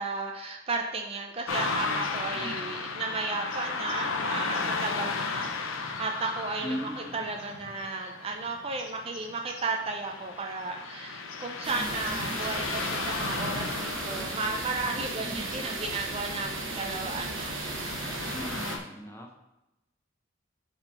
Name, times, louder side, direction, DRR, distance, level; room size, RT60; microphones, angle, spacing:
voice 1, 0.0-17.5, right 3 dB, 30° right, 2 dB, 0.5 m, -34 dB
Car passing by / Traffic noise roadway noise, 1.5-18.8, left 4 dB, 85° left, 0.6 m, -35 dB
voice 2, 2.3-2.7 6.6-7.2 11.7-12.5 15.2-15.6 18.3-19.4, equal, 15° left, 1 dB, 0.7 m, -39 dB
sound 1, 11.6-18.8, right 3 dB, 75° right, 1.0 m, -36 dB
4.8 x 3.7 x 5.3 m, 0.95 s
head